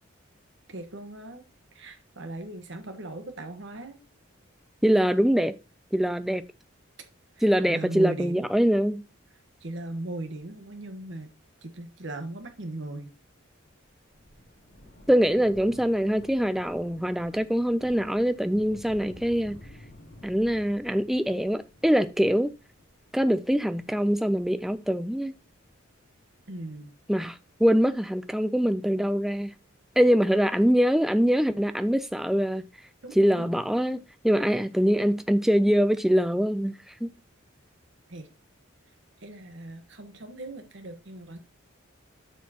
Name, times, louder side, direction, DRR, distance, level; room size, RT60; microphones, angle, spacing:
voice 1, 0.7-1.4 1.7-4.0 7.6-8.4 9.6-11.3 11.6-13.1 26.5-26.9 33.0-33.5 38.1-38.3 39.2-41.4, right 2 dB, 60° right, 1.2 m, -38 dB
voice 2, 4.8-5.5 5.9-6.4 7.4-9.0 15.1-19.5 20.2-22.5 23.1-25.3 27.1-29.5 30.0-32.6 33.1-36.7 37.0-37.1, equal, ahead, 0.3 m, -23 dB
Thunder, 13.7-26.5 27.4-27.5, equal, 60° left, 3.1 m, -51 dB
7.2 x 6.5 x 2.8 m
head